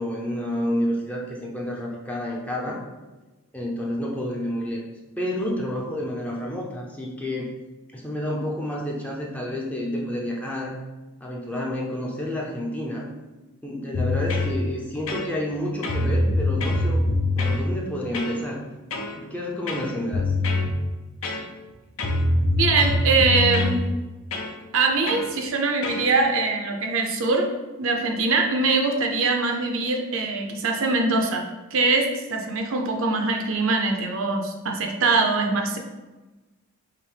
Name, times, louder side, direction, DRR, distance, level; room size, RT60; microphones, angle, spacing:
voice 1, 0.0-2.8 3.5-4.8 5.2-7.5 7.9-10.8 11.2-13.1 13.6-17.0 17.4-18.6 19.2-20.3, left 1 dB, 5° left, -3 dB, 0.5 m, -29 dB
sound 1, 13.9-14.5 15.1-15.6 15.8-17.6 18.1-18.4 18.9-19.2 19.7-20.7 21.2-21.7 22.0-23.8 24.3-24.5 25.1-25.3 25.8-26.1, left 2 dB, 65° left, 0.7 m, -24 dB
voice 2, 22.6-23.8 24.7-27.5 27.8-31.4 31.7-35.8, right 3 dB, 65° right, 2 dB, 0.6 m, -22 dB
5.6 x 2.1 x 3.2 m, 1.1 s
head